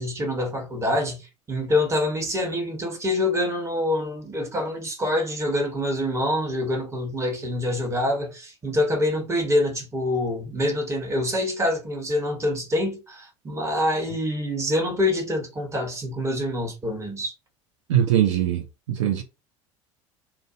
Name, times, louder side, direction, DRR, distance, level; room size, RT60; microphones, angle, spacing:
voice 1, 0.0-17.3, left 1 dB, 15° right, 1.1 m, -26 dB
voice 2, 17.9-19.2, right 10 dB, 65° right, 0.5 m, -22 dB
2.5 x 2.1 x 2.5 m
figure-of-eight pair, 70°, 16 cm